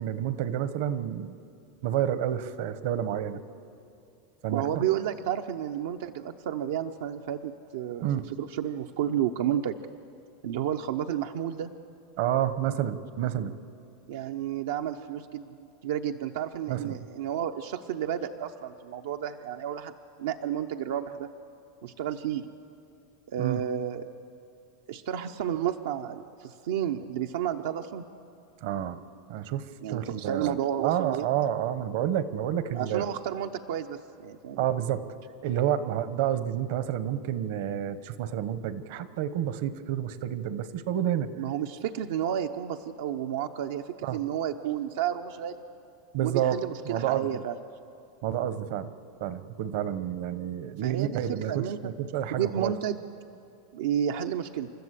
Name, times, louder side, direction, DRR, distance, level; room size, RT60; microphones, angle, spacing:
voice 1, 0.0-1.4 1.8-3.4 4.4-4.8 8.0-8.3 12.2-13.5 16.7-17.1 23.4-23.6 28.6-29.0 29.3-33.0 34.6-35.1 35.4-41.3 44.0-44.2 46.1-47.4 48.2-48.9 49.2-52.7, right 10 dB, 55° right, 13 dB, 1.0 m, -29 dB
voice 2, 4.5-9.8 10.4-11.7 14.1-21.3 21.8-22.5 23.3-24.0 24.9-28.0 29.8-31.3 32.7-34.6 41.4-45.6 46.2-47.6 50.8-51.8 52.3-53.0 53.7-54.7, right 10 dB, 80° right, 5 dB, 0.8 m, -31 dB
29.0 x 13.0 x 8.3 m, 2.6 s
supercardioid pair, 160°, 0 cm